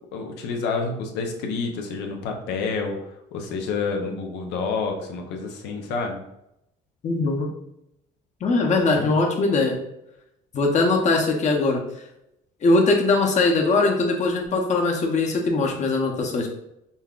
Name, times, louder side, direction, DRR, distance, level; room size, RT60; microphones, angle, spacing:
voice 1, 0.1-6.2, left 4 dB, 85° left, 2 dB, 0.7 m, -29 dB
voice 2, 7.0-7.5 8.4-9.8 10.5-11.8 12.6-16.5, left 3 dB, 45° left, 1 dB, 0.8 m, -21 dB
5.4 x 2.2 x 2.4 m, 0.81 s
cardioid pair, 110°, 17 cm